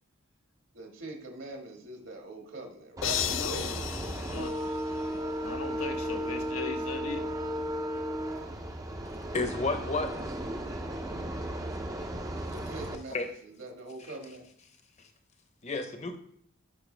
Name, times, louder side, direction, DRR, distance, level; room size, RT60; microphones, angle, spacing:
voice 1, 0.7-3.7 12.5-14.5, right 2 dB, 70° right, 2 dB, 1.9 m, -43 dB
sound 1, 3.0-5.3, left 12 dB, 60° left, 0.3 m, -35 dB
sound 2, 3.0-13.0, right 1 dB, 15° right, 0.6 m, -35 dB
voice 2, 3.3-3.8 4.3-4.7 5.4-7.3, left 4 dB, 90° left, 4 dB, 1.1 m, -38 dB
voice 3, 9.3-10.1 13.1-13.3 15.6-16.2, left 3 dB, 30° left, 7 dB, 0.8 m, -30 dB
11.5 x 5.8 x 3.4 m, 0.67 s
head